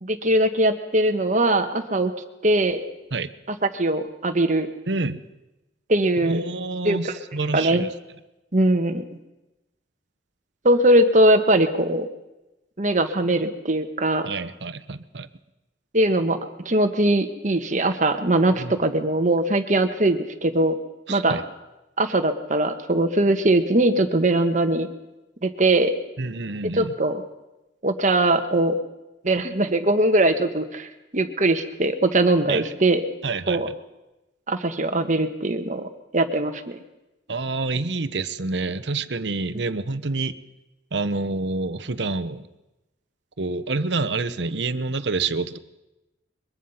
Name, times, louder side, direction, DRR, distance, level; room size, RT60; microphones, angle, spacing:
voice 1, 0.0-2.1 2.4-2.8 3.5-4.7 5.9-6.4 6.8-7.1 7.5-7.8 8.5-9.0 10.6-12.1 12.8-14.3 15.9-20.7 21.1-21.4 22.0-24.9 25.4-25.9 26.7-27.2 27.8-28.7 29.2-33.0 33.5-33.7 34.5-35.9 36.1-36.8, right 1 dB, 45° right, 7 dB, 1.6 m, -21 dB
voice 2, 4.9-5.2 6.2-7.9 14.2-15.3 18.6-18.8 21.1-21.4 26.2-26.9 32.5-32.7 33.2-33.7 37.3-40.3 40.9-42.5 43.4-45.6, right 3 dB, 70° right, 12 dB, 1.0 m, -27 dB
22.5 x 22.0 x 5.8 m, 1.0 s
head